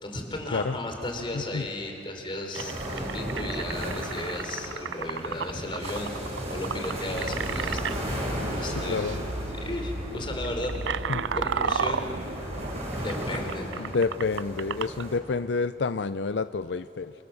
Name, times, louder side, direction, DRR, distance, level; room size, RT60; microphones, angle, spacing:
voice 1, 0.0-6.2 6.5-8.0 8.6-9.0 9.5-11.1 11.3-12.1 13.0-13.9, left 1 dB, 30° left, 3 dB, 4.0 m, -35 dB
voice 2, 1.3-1.7 8.7-9.2 11.1-11.2 13.8-17.1, left 4 dB, 70° left, 12 dB, 0.5 m, -29 dB
sound 1, 2.5-15.2, equal, 35° right, 7.5 m, -35 dB
sound 2, 2.5-8.0 9.0-9.2 9.5-9.7 10.3-15.1, right 7 dB, 90° right, 0.6 m, -33 dB
sound 3, 7.1-12.8, equal, 65° right, 2.2 m, -37 dB
29.0 x 27.5 x 7.0 m, 3.0 s
head